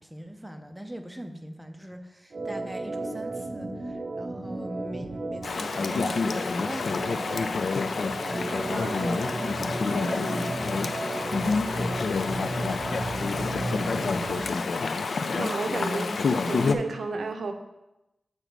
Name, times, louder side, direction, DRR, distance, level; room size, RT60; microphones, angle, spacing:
voice 1, 0.0-7.6 8.2-14.6 16.1-16.2, equal, 5° right, 4 dB, 0.5 m, -41 dB
Organ, 2.3-14.5, right 2 dB, 50° right, 0.7 m, -35 dB
Chatter / Stream, 5.4-16.7, left 4 dB, 60° left, 0.4 m, -28 dB
voice 2, 15.1-16.1 16.5-17.5, right 3 dB, 80° right, 5 dB, 0.6 m, -32 dB
6.8 x 4.1 x 4.5 m, 0.94 s
wide cardioid pair, 135°, 0 cm